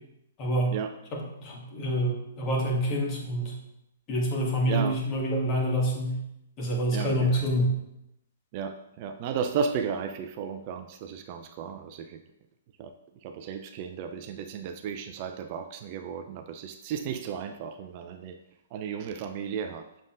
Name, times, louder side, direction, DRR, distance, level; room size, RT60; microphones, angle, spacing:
voice 1, 0.4-0.7 1.1-3.5 4.1-6.2 6.6-7.7, equal, 30° left, -2 dB, 1.8 m, -27 dB
voice 2, 4.7-5.0 6.9-7.5 8.5-12.2 12.8-12.9 13.2-18.4 18.7-19.9, right 6 dB, 40° right, 6 dB, 0.5 m, -34 dB
7.3 x 6.6 x 2.5 m, 0.83 s
figure-of-eight pair, 115°, 0 cm